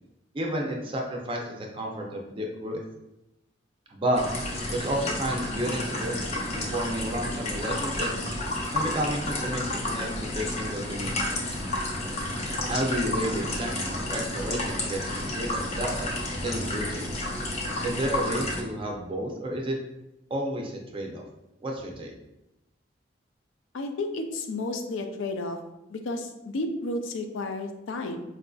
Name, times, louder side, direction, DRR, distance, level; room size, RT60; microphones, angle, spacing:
voice 1, 0.3-2.8 3.9-4.2 4.7-8.1 8.7-11.4 12.7-17.1 17.8-19.8 20.3-21.2 21.6-22.1, right 1 dB, 30° right, 0 dB, 0.5 m, -31 dB
sound 1, 4.1-18.6, left 1 dB, 35° left, 0.6 m, -31 dB
voice 2, 23.7-25.6 25.9-28.2, left 2 dB, 85° left, 5 dB, 0.4 m, -32 dB
4.6 x 2.5 x 2.3 m, 0.91 s
head